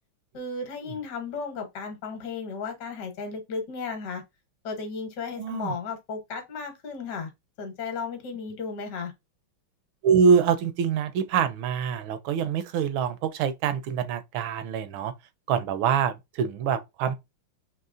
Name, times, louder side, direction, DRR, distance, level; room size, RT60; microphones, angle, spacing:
voice 1, 0.3-4.2 4.6-7.3 7.6-9.1, left 4 dB, 55° left, 1.5 m, -34 dB
voice 2, 5.4-5.7 10.0-15.1 15.5-17.1, right 7 dB, 75° right, 1.3 m, -25 dB
5.4 x 3.0 x 2.4 m
omnidirectional pair, 2.4 m